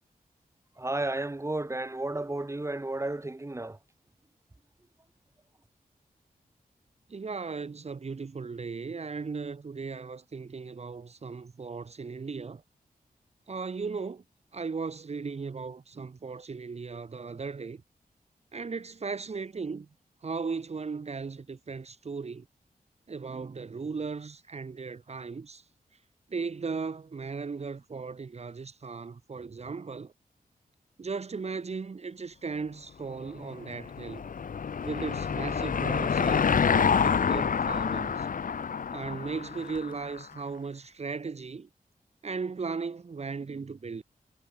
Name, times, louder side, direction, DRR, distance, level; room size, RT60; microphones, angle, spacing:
voice 1, 0.8-3.8, right 2 dB, 20° right, 2.8 m, -32 dB
voice 2, 7.1-12.6 13.5-14.2 14.5-17.8 18.5-19.9 20.2-22.4 23.1-25.6 26.3-30.1 31.0-34.2 34.8-38.3 38.9-41.7 42.2-44.0, right 4 dB, 45° right, 1.3 m, -37 dB
Car passing by / Engine, 33.4-40.2, left 6 dB, 65° left, 1.1 m, -28 dB
wide cardioid pair, 130°, 15 cm